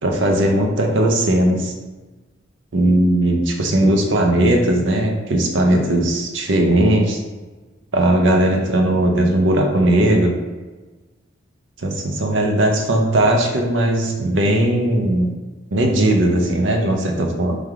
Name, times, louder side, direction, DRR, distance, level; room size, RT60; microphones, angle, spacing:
voice 1, 0.0-1.7 2.7-7.2 7.9-10.3 11.8-15.3 15.7-17.6, right 1 dB, 70° right, 2 dB, 0.6 m, -18 dB
3.4 x 3.3 x 3.5 m, 1.3 s
head